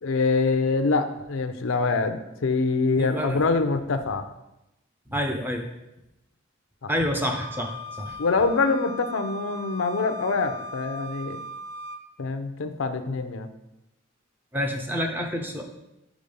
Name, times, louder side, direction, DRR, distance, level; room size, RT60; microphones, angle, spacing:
voice 1, 0.0-4.2 6.8-6.9 8.2-11.4 12.2-13.5, left 4 dB, 70° left, 8 dB, 0.5 m, -25 dB
voice 2, 3.0-3.4 5.1-5.6 6.9-7.7 8.0-8.2 14.5-15.6, equal, 10° right, 3 dB, 0.6 m, -28 dB
Wind instrument woodwind instrument, 7.3-12.0, left 1 dB, 50° right, 0.6 m, -38 dB
5.1 x 4.9 x 5.4 m, 0.91 s
head